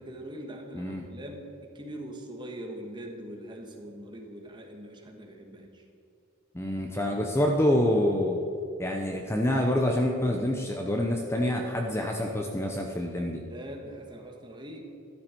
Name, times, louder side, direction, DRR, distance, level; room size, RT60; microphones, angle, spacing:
voice 1, 0.0-5.8 13.4-14.8, right 1 dB, 20° right, 2 dB, 1.5 m, -42 dB
voice 2, 0.7-1.1 6.5-8.4 8.8-13.4, left 1 dB, 10° left, 2 dB, 0.7 m, -27 dB
13.0 x 12.0 x 4.5 m, 2.8 s
head